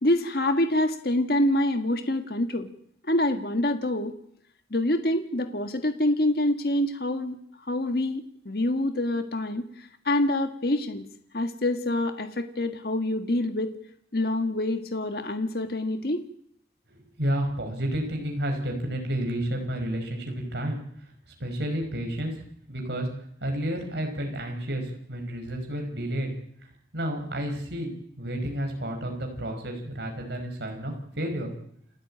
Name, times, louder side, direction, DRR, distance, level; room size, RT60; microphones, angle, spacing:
voice 1, 0.0-2.7 3.1-4.1 4.7-7.4 7.7-11.1 11.3-13.8 14.1-16.3, left 1 dB, 55° left, 7 dB, 1.7 m, -26 dB
voice 2, 17.2-20.8 21.4-22.4 22.7-23.1 23.4-26.4 26.9-27.9 28.2-31.5, right 1 dB, 70° right, 2 dB, 5.3 m, -30 dB
29.5 x 12.5 x 8.9 m, 0.68 s
head